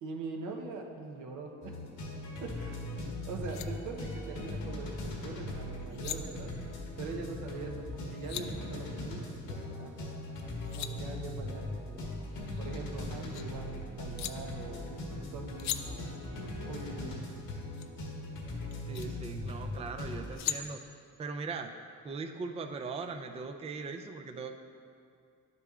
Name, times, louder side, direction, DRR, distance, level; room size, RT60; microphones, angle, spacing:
voice 1, 0.0-1.8 2.4-2.8 3.2-6.5 7.0-10.1 10.7-12.1 12.6-16.1 16.6-17.5, right 3 dB, 80° right, 1 dB, 0.9 m, -42 dB
sound 1, 1.6-20.3, left 1 dB, 85° left, 1.7 m, -40 dB
sound 2, 3.1-3.2 3.4-3.7 5.7-6.2 7.8-8.5 10.4-10.9 12.3-13.4 14.2-14.3 15.6-15.8 17.8-17.9 18.7-19.1 20.0-20.6, left 11 dB, 65° left, 0.4 m, -39 dB
voice 2, 18.9-21.7 22.0-24.5, right 4 dB, 20° right, 5 dB, 0.4 m, -40 dB
10.5 x 6.7 x 2.4 m, 2.4 s
cardioid pair, 90°, 30 cm